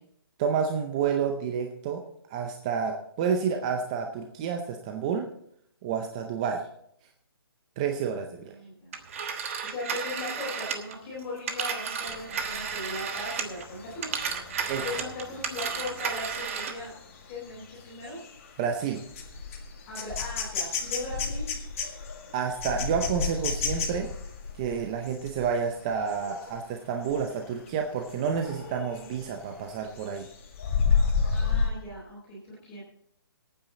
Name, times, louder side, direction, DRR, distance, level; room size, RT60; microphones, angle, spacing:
voice 1, 0.4-2.0 2.3-5.3 5.8-6.6 7.8-8.4 14.7-14.8 18.6-19.0 22.3-24.1 24.5-30.3, right 6 dB, 15° right, 3 dB, 0.6 m, -29 dB
voice 2, 8.4-8.9 9.6-14.2 14.7-16.9 17.3-18.2 19.9-21.5 31.3-32.8, left 2 dB, 15° left, -6 dB, 4.2 m, -38 dB
Telephone, 8.9-13.7 14.0-16.9, right 6 dB, 35° right, 1.2 m, -33 dB
sound 1, 12.1-26.6 27.0-27.3 27.7-29.3 29.7-31.7, left 5 dB, 35° left, 1.9 m, -32 dB
18.5 x 9.1 x 4.0 m, 0.71 s
hypercardioid pair, 170°, 13 cm